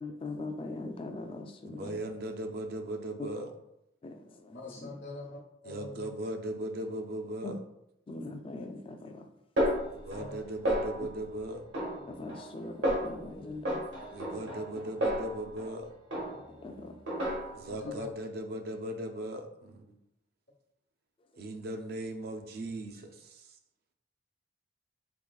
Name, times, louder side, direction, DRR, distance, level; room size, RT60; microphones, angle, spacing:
voice 1, 0.0-2.0 4.0-4.9 7.4-7.5 8.1-9.3 12.1-13.8 16.5-17.0, left 2 dB, 30° left, 5 dB, 0.3 m, -41 dB
voice 2, 1.7-3.5 5.7-7.6 9.9-11.7 14.1-15.9 17.5-19.9 21.4-23.5, right 1 dB, 55° right, 5 dB, 0.4 m, -38 dB
voice 3, 4.5-6.1 10.1-10.4 17.7-18.1, left 3 dB, 90° left, -5 dB, 0.9 m, -44 dB
Snare drum, 9.6-10.4 10.7-11.2 11.7-12.5 12.8-13.2 13.7-15.8 16.1-16.6 17.1-17.8, equal, 70° right, 1.0 m, -32 dB
3.6 x 3.2 x 2.3 m, 0.83 s
head